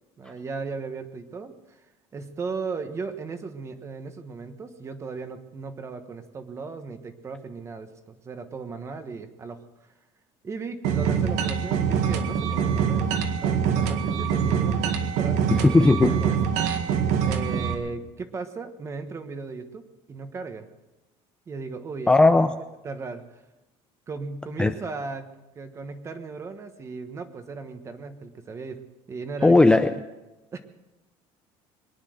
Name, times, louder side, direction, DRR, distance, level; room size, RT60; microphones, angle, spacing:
voice 1, 0.2-1.8 2.1-9.6 10.4-15.8 16.1-16.4 16.9-20.7 21.5-22.1 22.8-23.4 24.1-25.3 25.5-28.8 29.1-29.7 30.5-30.6, right 4 dB, 25° right, 9 dB, 1.3 m, -36 dB
sound 1, 10.8-17.7, right 7 dB, 75° right, 1.8 m, -24 dB
voice 2, 15.5-16.2 22.1-22.5 24.6-24.7 29.4-29.9, left 2 dB, 10° left, 7 dB, 0.5 m, -17 dB
22.0 x 10.0 x 6.5 m, 1.0 s
cardioid pair, 155°, 12 cm